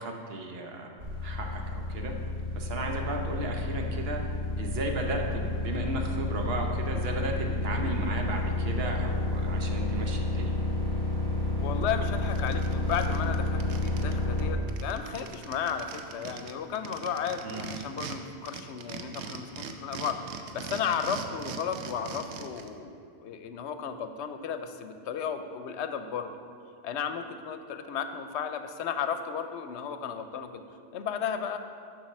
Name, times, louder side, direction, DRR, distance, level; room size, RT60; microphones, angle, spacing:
voice 1, 0.0-2.2 2.5-4.2 4.6-10.6 17.4-17.7, right 2 dB, 65° right, 2 dB, 1.1 m, -35 dB
sound 1, 1.0-14.5, left 2 dB, 50° right, 1.4 m, -30 dB
voice 2, 11.6-26.3 26.8-30.6 30.9-31.6, left 7 dB, 85° left, 8 dB, 0.9 m, -34 dB
sound 2, 11.8-11.9 12.2-14.1 14.4-14.5 14.7-18.2 18.5-22.7, right 6 dB, 85° right, 0.9 m, -40 dB
7.2 x 5.2 x 6.4 m, 2.4 s
omnidirectional pair, 1.1 m